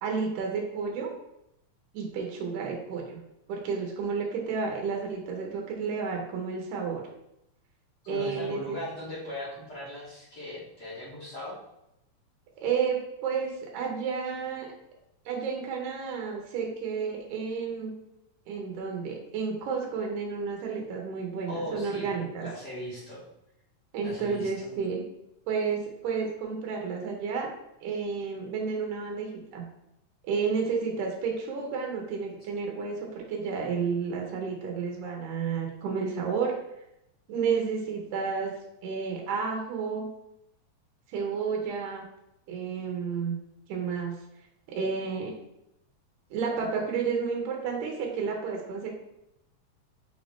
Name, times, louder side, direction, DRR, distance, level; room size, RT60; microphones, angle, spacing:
voice 1, 0.0-1.1 1.9-3.2 3.5-7.0 8.1-8.8 12.6-14.7 15.3-17.9 18.5-22.5 23.9-25.0 25.5-27.5 27.8-29.7 30.2-36.5 37.3-38.5 38.8-40.1 41.1-42.1 42.5-43.4 43.7-44.2 44.7-45.3 46.3-48.9, right 5 dB, 85° right, 0 dB, 2.3 m, -31 dB
voice 2, 8.0-11.6 21.5-22.1 22.4-23.2 24.0-24.7, left 1 dB, 45° left, -9 dB, 1.6 m, -38 dB
5.7 x 2.5 x 3.4 m, 0.82 s
omnidirectional pair, 3.5 m